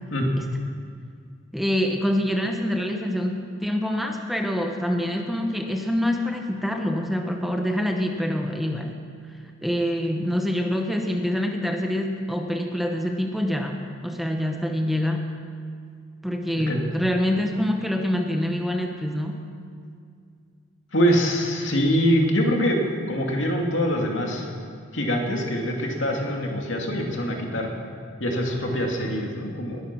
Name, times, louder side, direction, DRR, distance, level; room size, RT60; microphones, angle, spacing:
voice 1, 1.5-9.0 9.6-15.3 16.2-19.5, equal, ahead, 3 dB, 0.9 m, -26 dB
voice 2, 20.9-22.8 23.1-24.5 24.9-27.7 28.2-29.8, equal, 70° left, 1 dB, 2.5 m, -24 dB
21.0 x 11.0 x 6.1 m, 2.2 s
head